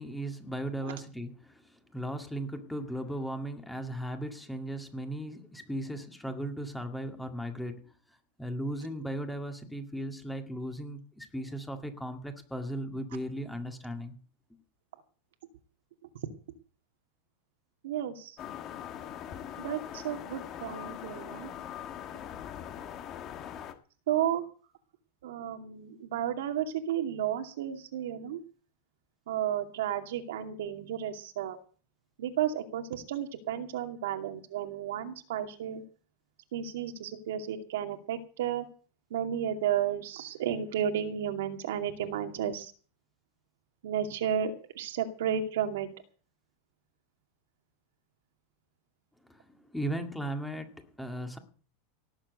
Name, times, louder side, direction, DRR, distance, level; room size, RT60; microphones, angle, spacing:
voice 1, 0.0-14.1 49.3-51.4, right 1 dB, 5° left, 6 dB, 2.0 m, -37 dB
voice 2, 17.8-18.4 19.6-21.5 24.1-24.4 25.2-28.4 29.3-31.6 32.2-35.8 36.5-38.7 39.1-42.7 43.8-45.9, right 9 dB, 85° right, 6 dB, 2.4 m, -32 dB
sound 1, 18.4-23.7, left 10 dB, 30° left, 1.7 m, -41 dB
18.0 x 7.5 x 8.0 m, 0.41 s
supercardioid pair, 155°, 0 cm